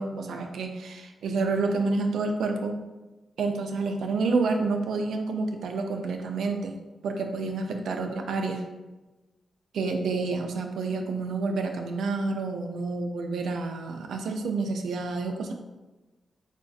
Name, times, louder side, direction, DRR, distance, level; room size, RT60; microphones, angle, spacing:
voice 1, 0.0-2.8 3.4-6.7 7.0-8.6 9.7-15.5, right 3 dB, 85° right, 4 dB, 0.4 m, -29 dB
4.4 x 2.3 x 2.6 m, 1.1 s
cardioid pair, 90°, 0 cm